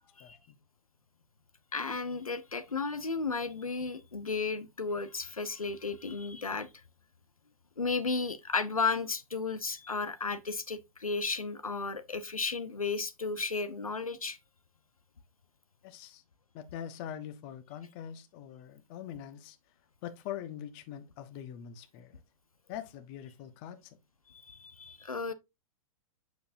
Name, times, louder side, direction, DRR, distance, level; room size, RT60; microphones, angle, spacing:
voice 1, 0.2-0.5 15.8-16.2 16.5-19.6 20.0-22.2 22.7-24.0, left 10 dB, 40° left, 1.2 m, -43 dB
voice 2, 1.7-6.7 7.8-14.4 24.3-25.3, left 4 dB, 85° left, 1.0 m, -34 dB
8.3 x 7.0 x 2.7 m
figure-of-eight pair, 105°, 18 cm